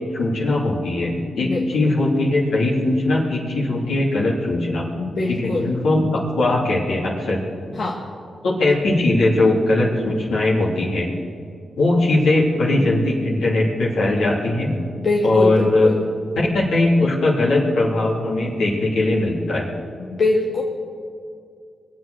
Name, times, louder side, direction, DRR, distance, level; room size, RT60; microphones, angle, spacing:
voice 1, 0.1-4.9 5.4-7.8 8.4-11.1 11.8-14.8 15.2-15.9 16.5-19.7, left 2 dB, 85° left, -5 dB, 3.2 m, -20 dB
voice 2, 5.0-5.7 7.7-8.0 12.8-12.9 15.0-16.0 20.0-20.6, left 2 dB, 70° left, -4 dB, 1.9 m, -23 dB
23.5 x 7.8 x 6.5 m, 2.3 s
supercardioid pair, 45°, 0 cm